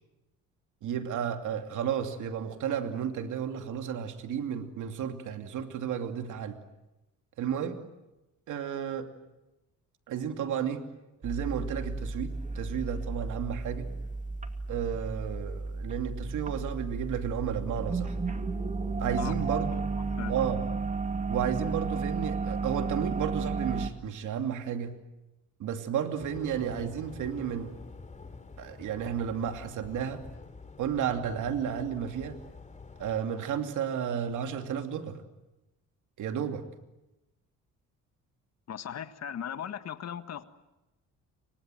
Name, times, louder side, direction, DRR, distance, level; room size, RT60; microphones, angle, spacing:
voice 1, 0.8-6.6 7.4-7.8 8.5-9.1 10.1-10.8 11.2-13.9 14.7-18.1 19.0-19.8 20.3-20.6 21.3-24.9 25.6-27.7 28.6-30.2 30.8-32.4 33.0-35.2 36.2-36.6, right 8 dB, 80° right, 6 dB, 2.7 m, -32 dB
sound 1, 11.2-23.9, right 4 dB, 25° right, 2.5 m, -33 dB
voice 2, 19.9-20.3 38.7-40.4, left 9 dB, 60° left, 11 dB, 1.7 m, -38 dB
sound 2, 26.2-33.2, left 3 dB, 25° left, 3.1 m, -47 dB
30.0 x 25.0 x 7.8 m, 1.0 s
cardioid pair, 90°, 30 cm